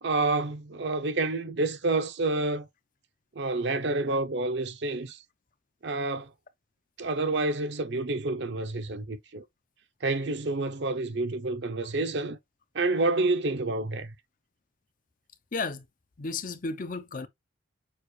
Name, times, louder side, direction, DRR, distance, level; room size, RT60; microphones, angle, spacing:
voice 1, 0.0-2.7 3.4-5.2 5.8-6.3 7.0-9.4 10.0-12.4 12.7-14.1, right 2 dB, 55° right, 0.6 m, -28 dB
voice 2, 15.5-15.8 16.2-17.3, left 3 dB, 40° left, 0.6 m, -33 dB
6.7 x 2.4 x 3.2 m
head